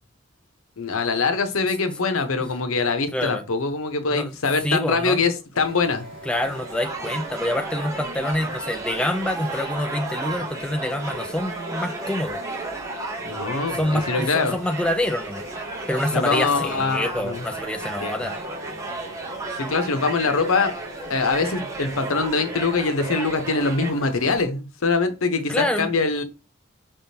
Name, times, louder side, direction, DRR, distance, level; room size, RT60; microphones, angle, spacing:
voice 1, 0.8-6.0 13.2-14.5 16.1-17.4 18.0-18.2 19.6-20.7 21.1-26.2, left 4 dB, 85° left, 0.8 m, -23 dB
voice 2, 3.1-3.5 4.1-4.4 4.6-5.2 6.3-12.4 13.7-15.4 15.9-18.4 25.5-25.9, left 1 dB, 5° left, 0.3 m, -26 dB
sound 1, 5.5-24.5, equal, 55° right, 2.7 m, -41 dB
sound 2, 6.4-23.9, right 2 dB, 15° right, 0.7 m, -33 dB
5.4 x 3.6 x 2.7 m
head